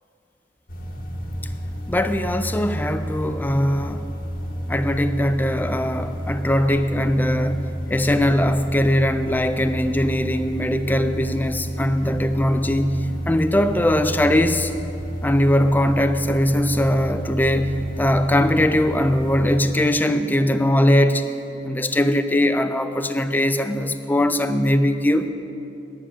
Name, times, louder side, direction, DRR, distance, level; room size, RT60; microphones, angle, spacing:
sound 1, 0.7-19.6, equal, 50° left, 1.1 m, -31 dB
voice 1, 1.9-4.1 4.7-14.7 15.2-21.2 21.6-25.3, left 1 dB, 10° left, 9 dB, 0.4 m, -20 dB
10.0 x 9.5 x 6.3 m, 2.8 s
head